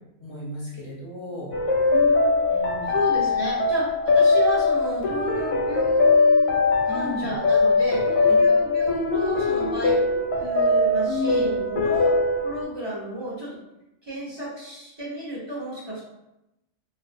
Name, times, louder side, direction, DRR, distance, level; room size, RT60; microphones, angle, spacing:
voice 1, 0.2-1.6 2.5-3.0 6.9-7.3 8.3-8.4 11.0-11.7, left 2 dB, 35° left, -6 dB, 0.4 m, -33 dB
sound 1, 1.5-12.6, left 3 dB, 85° left, 1.1 m, -21 dB
voice 2, 1.9-2.4 2.9-10.0 10.4-12.1 12.4-13.6 14.0-16.0, equal, 40° right, -9 dB, 0.3 m, -32 dB
2.5 x 2.0 x 2.5 m, 0.91 s
omnidirectional pair, 1.4 m